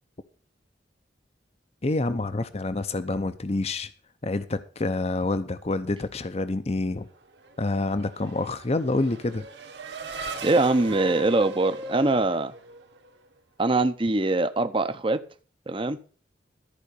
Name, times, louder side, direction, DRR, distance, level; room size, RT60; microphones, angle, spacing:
voice 1, 1.8-3.9 4.2-7.1 7.6-9.5, left 2 dB, 35° left, 0.7 m, -27 dB
Race car auto racing / Accelerating revving vroom, 7.2-13.3, right 2 dB, 60° right, 1.6 m, -39 dB
voice 2, 10.4-12.5 13.6-15.2 15.7-16.0, right 2 dB, 25° right, 0.7 m, -23 dB
13.5 x 5.1 x 8.3 m
head